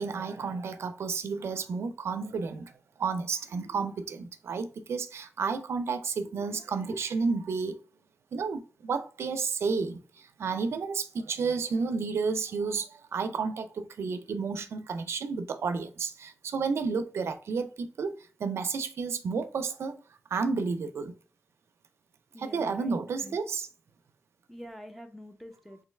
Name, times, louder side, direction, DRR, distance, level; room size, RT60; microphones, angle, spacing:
voice 1, 0.0-2.7 3.0-7.8 8.3-20.0 20.3-21.1 22.4-23.7, right 5 dB, 70° right, 0.4 m, -31 dB
voice 2, 22.3-23.4 24.5-25.8, equal, ahead, 0.5 m, -45 dB
3.7 x 3.1 x 3.2 m
wide cardioid pair, 125°, 4 cm